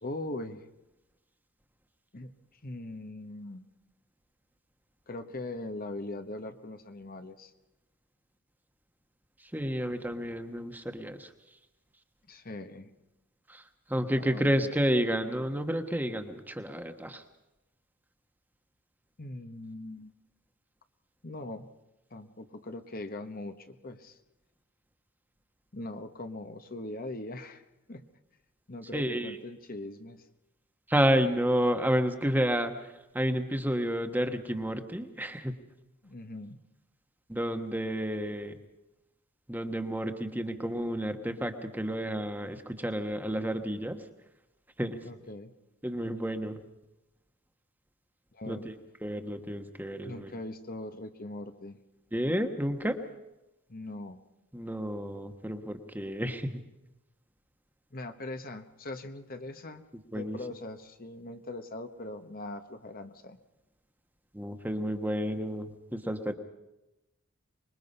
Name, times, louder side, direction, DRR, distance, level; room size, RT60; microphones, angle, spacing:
voice 1, 0.0-0.7 2.1-3.6 5.1-7.5 12.3-12.9 14.2-14.5 19.2-20.1 21.2-21.7 22.1-24.2 25.7-27.6 27.9-28.0 28.7-30.3 36.0-36.6 45.0-45.5 48.3-48.7 50.0-51.8 53.7-54.2 57.9-59.9 60.1-63.4, left 2 dB, 40° left, 8 dB, 1.2 m, -41 dB
voice 2, 9.5-11.3 13.5-13.6 13.9-17.2 28.9-29.3 30.9-35.5 37.3-38.5 39.5-44.0 44.8-45.0 45.8-46.6 48.5-48.7 49.0-50.3 52.1-53.0 54.5-56.6 60.1-60.4 64.3-66.3, equal, 10° right, 6 dB, 1.3 m, -30 dB
25.5 x 22.0 x 5.5 m, 0.95 s
head